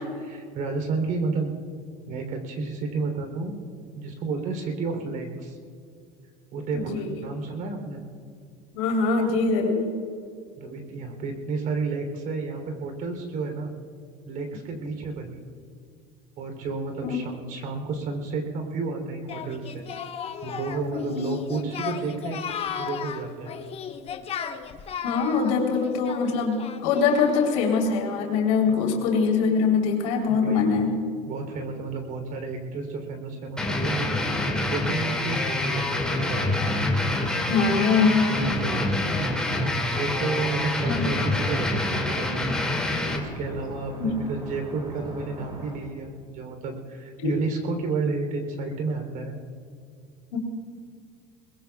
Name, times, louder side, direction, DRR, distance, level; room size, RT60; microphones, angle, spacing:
voice 1, 0.2-1.5 2.1-3.6 3.9-5.6 6.5-8.0 10.6-13.7 14.3-15.4 16.4-19.8 20.4-22.4 22.8-23.5 28.7-28.8 30.3-30.7 31.3-36.6 38.3-39.0 39.8-42.6 43.1-49.4, right 4 dB, 55° right, 4 dB, 3.3 m, -31 dB
voice 2, 6.7-7.1 8.7-9.9 17.0-17.2 20.9-21.2 25.0-30.9 37.5-38.3 40.9-41.1 44.0-44.2 47.2-47.3 50.3-50.4, left 5 dB, 90° left, 0 dB, 3.6 m, -23 dB
Singing, 19.3-27.6, left 8 dB, 40° left, 1.0 m, -35 dB
sound 1, 33.6-43.2, left 2 dB, 5° left, 2.3 m, -26 dB
sound 2, 39.1-45.8, equal, 30° right, 4.9 m, -42 dB
23.0 x 20.5 x 2.4 m, 2.3 s
supercardioid pair, 110°, 16 cm